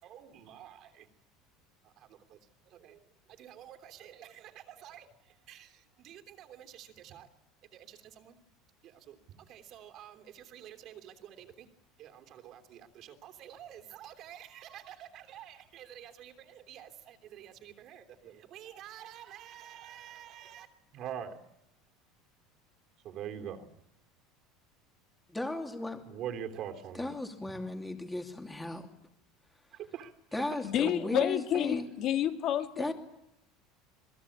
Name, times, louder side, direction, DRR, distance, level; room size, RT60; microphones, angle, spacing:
voice 1, 0.0-1.1 2.3-2.4 2.7-3.0 3.4-5.1 5.5-7.3 7.7-8.4 8.8-9.2 9.5-11.7 12.0-20.7 20.9-21.4 23.0-23.7 26.1-27.1 29.9-30.1 30.4-30.6, right 9 dB, 45° right, 6 dB, 3.2 m, -46 dB
voice 2, 25.3-26.0 26.9-28.9 30.3-31.9 32.8-32.9, left 2 dB, 5° left, 5 dB, 2.8 m, -36 dB
voice 3, 30.6-32.9, left 10 dB, 45° left, 7 dB, 2.3 m, -29 dB
28.0 x 21.5 x 8.7 m, 0.79 s
supercardioid pair, 140°, 0 cm